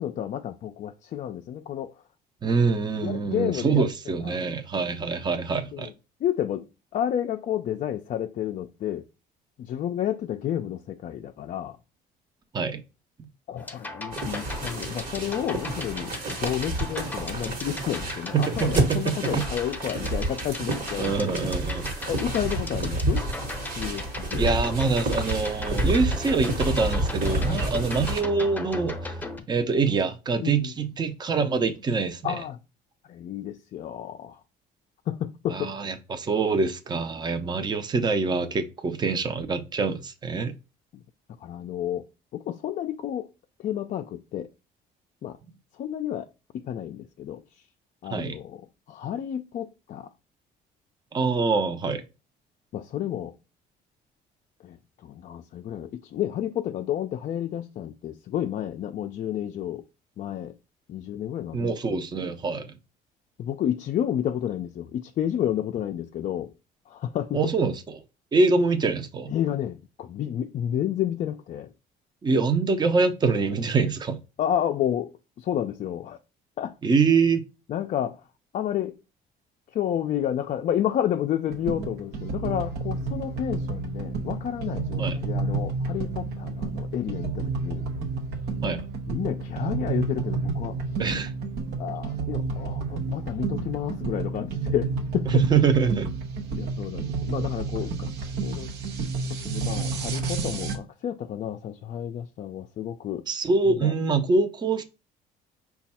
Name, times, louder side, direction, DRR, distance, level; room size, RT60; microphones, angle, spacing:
voice 1, 0.0-1.9 3.0-3.8 4.2-4.4 5.7-5.9 6.2-6.7 6.9-9.0 9.6-11.8 13.5-21.4 22.1-23.3 23.8-24.5 27.4-27.8 30.4-30.7 32.2-32.6 33.1-34.4 35.1-35.7 40.9-41.0 41.4-42.1 42.3-43.3 43.6-44.5 45.2-45.4 45.8-46.3 46.5-47.4 48.0-50.1 52.7-53.3 54.6-54.8 55.0-59.8 60.2-60.5 60.9-62.0 63.4-66.5 66.9-67.4 69.3-71.7 74.4-75.1 75.4-76.2 76.6-76.8 77.7-78.2 78.5-79.0 79.7-87.9 89.1-90.8 91.8-95.4 96.6-98.1 98.4-98.7 99.4-103.3 103.8-103.9, left 10 dB, 50° left, 0.4 m, -30 dB
voice 2, 2.4-5.9 12.5-12.8 18.1-19.4 21.0-21.9 24.4-29.1 29.5-32.4 35.5-40.5 48.1-48.4 51.1-52.0 61.5-62.7 67.3-67.7 68.3-69.3 72.2-74.2 76.8-77.4 85.0-85.2 88.6-88.8 91.0-91.3 95.3-96.1 103.3-104.8, right 4 dB, 25° right, 0.6 m, -25 dB
sound 1, 13.6-29.4, left 2 dB, 10° left, 0.7 m, -38 dB
sound 2, 14.1-28.2, right 1 dB, 55° right, 1.2 m, -30 dB
sound 3, 81.5-100.8, right 4 dB, 80° right, 0.8 m, -30 dB
5.0 x 2.3 x 4.1 m
cardioid pair, 110°, 17 cm